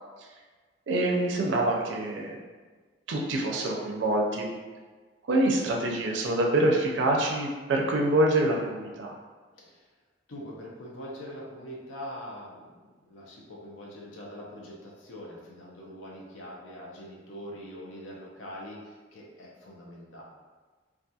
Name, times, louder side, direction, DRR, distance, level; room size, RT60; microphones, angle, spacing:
voice 1, 0.9-2.4 3.1-4.5 5.3-9.1, right 1 dB, 70° right, 0 dB, 0.4 m, -25 dB
voice 2, 9.6-9.9 10.3-12.7 13.1-20.2, equal, 90° left, -3 dB, 0.6 m, -43 dB
2.7 x 2.3 x 2.3 m, 1.4 s
head